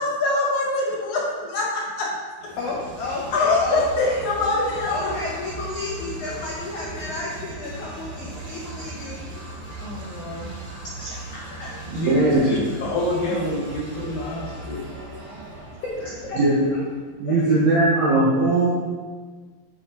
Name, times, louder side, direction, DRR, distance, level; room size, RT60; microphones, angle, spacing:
voice 1, 0.0-2.1 3.3-5.1 10.2-10.5 11.9-14.9 17.4-17.5, left 2 dB, 60° left, -3 dB, 2.3 m, -25 dB
sound 1, 2.4-17.1, right 1 dB, 55° right, 2.3 m, -38 dB
voice 2, 2.6-4.2 4.8-9.2 11.0-11.1 11.6-11.7 16.0-16.4 16.7-16.8 17.2-17.6, left 3 dB, 80° left, -4 dB, 1.7 m, -32 dB
voice 3, 11.9-12.6 16.3-16.6 17.2-18.7, right 2 dB, 90° right, -6 dB, 1.5 m, -19 dB
8.4 x 5.1 x 4.2 m, 1.5 s
omnidirectional pair, 4.8 m